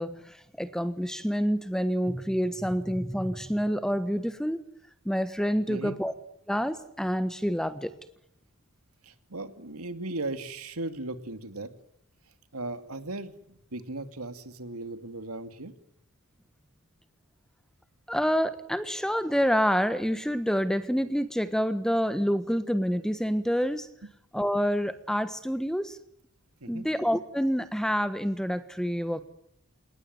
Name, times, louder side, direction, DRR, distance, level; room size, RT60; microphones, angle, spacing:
voice 1, 0.0-4.6 5.0-6.1 6.5-7.9 18.1-23.9 24.3-26.0 26.7-29.2, equal, 5° left, 12 dB, 1.3 m, -27 dB
voice 2, 5.7-6.0 9.0-11.7 12.5-15.7 24.0-24.1 26.6-26.9, right 2 dB, 90° right, 9 dB, 2.6 m, -37 dB
28.0 x 19.5 x 9.4 m, 0.78 s
head